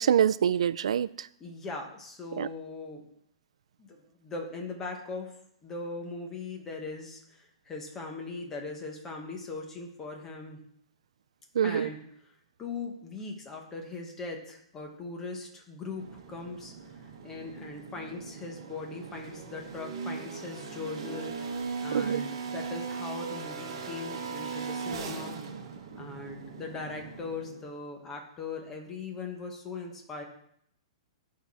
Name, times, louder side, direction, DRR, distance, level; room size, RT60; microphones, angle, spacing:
voice 1, 0.0-1.3 2.4-2.5 11.5-11.9 21.9-22.3, right 9 dB, 70° right, 16 dB, 0.3 m, -25 dB
voice 2, 1.4-3.0 3.8-5.3 5.6-10.6 11.6-12.0 12.6-25.4 25.9-30.2, left 3 dB, 10° left, 2 dB, 0.9 m, -40 dB
sound 1, 15.8-27.7, right 5 dB, 45° right, 1.2 m, -39 dB
10.5 x 4.7 x 4.1 m, 0.70 s
hypercardioid pair, 180°, 3 cm